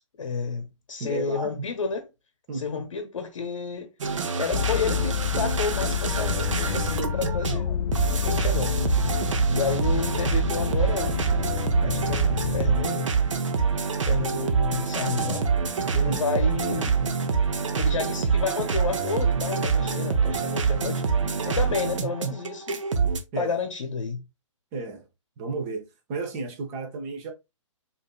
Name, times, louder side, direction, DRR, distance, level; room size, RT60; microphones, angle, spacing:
voice 1, 0.2-2.1 2.5-3.9 4.3-8.9 9.5-11.5 11.8-13.1 13.9-15.5 15.9-17.0 17.8-21.0 21.4-22.8 23.4-24.2, left 5 dB, 70° left, 0.8 m, -31 dB
voice 2, 1.0-1.6 2.5-2.8 16.0-16.2 23.3-23.5 24.7-25.0 25.4-27.3, right 3 dB, 30° right, 0.9 m, -33 dB
sound 1, 4.0-23.2, right 5 dB, 70° right, 0.8 m, -26 dB
sound 2, 4.5-12.8, left 9 dB, 45° left, 0.4 m, -28 dB
5.0 x 2.7 x 2.3 m
hypercardioid pair, 135°, 16 cm